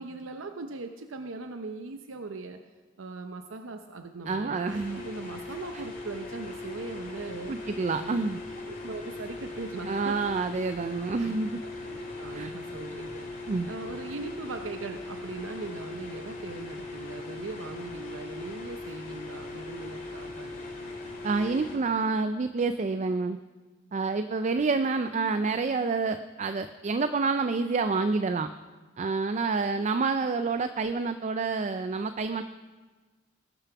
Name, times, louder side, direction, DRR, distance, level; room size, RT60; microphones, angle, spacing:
voice 1, 0.0-2.6 3.0-7.5 8.0-8.3 8.6-10.2 11.2-11.4 11.6-13.3 13.7-20.5 24.5-24.8, right 3 dB, 70° right, 6 dB, 0.7 m, -40 dB
voice 2, 4.3-5.0 5.7-5.8 7.5-8.4 9.9-11.6 12.3-12.5 13.5-13.7 21.2-23.4 23.9-28.5 29.0-32.4, right 4 dB, 35° right, 10 dB, 0.4 m, -28 dB
sound 1, 4.7-21.8, left 2 dB, 40° left, 2.7 m, -40 dB
20.0 x 6.9 x 5.9 m, 1.4 s
head